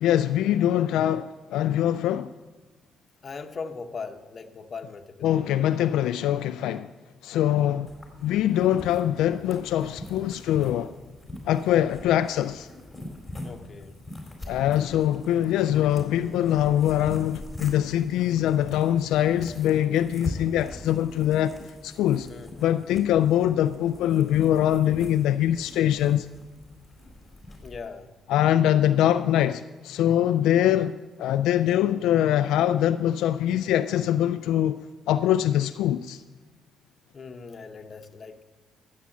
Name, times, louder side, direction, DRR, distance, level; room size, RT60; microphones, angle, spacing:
voice 1, 0.0-2.3 5.2-6.9 7.2-7.9 8.2-10.9 11.5-12.7 14.5-21.5 21.8-22.3 22.6-26.3 28.3-34.8 35.1-36.2, left 11 dB, 90° left, 0.3 m, -23 dB
voice 2, 3.2-5.4 13.4-13.9 22.3-22.7 27.6-28.1 37.1-38.4, left 5 dB, 45° left, 1.1 m, -39 dB
sound 1, 7.9-27.8, left 1 dB, 5° left, 4.0 m, -43 dB
12.5 x 8.3 x 7.3 m
cardioid pair, 90°, 0 cm